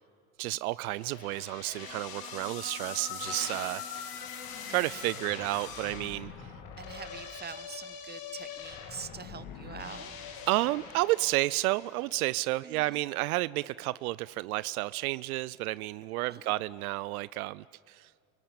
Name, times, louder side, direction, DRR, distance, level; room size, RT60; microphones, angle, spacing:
voice 1, 0.4-3.8 4.7-6.3 10.5-18.1, right 19 dB, 75° right, 0.5 m, -31 dB
sound 1, 0.9-12.2, left 7 dB, 55° left, 2.9 m, -42 dB
voice 2, 6.8-10.2 12.6-13.0 16.3-16.4, right 6 dB, 20° right, 1.2 m, -44 dB
29.0 x 18.0 x 8.7 m
hypercardioid pair, 80°, 43 cm